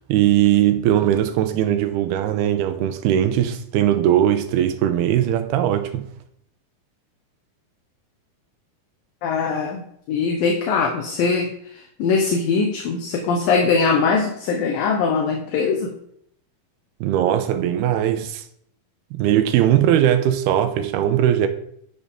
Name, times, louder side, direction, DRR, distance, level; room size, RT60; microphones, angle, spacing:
voice 1, 0.0-6.1 17.0-18.4 19.1-21.5, right 11 dB, 90° right, 2.9 m, -19 dB
voice 2, 9.2-9.8 10.1-15.9, left 5 dB, 70° left, 2.7 m, -21 dB
11.0 x 10.5 x 3.8 m
omnidirectional pair, 4.4 m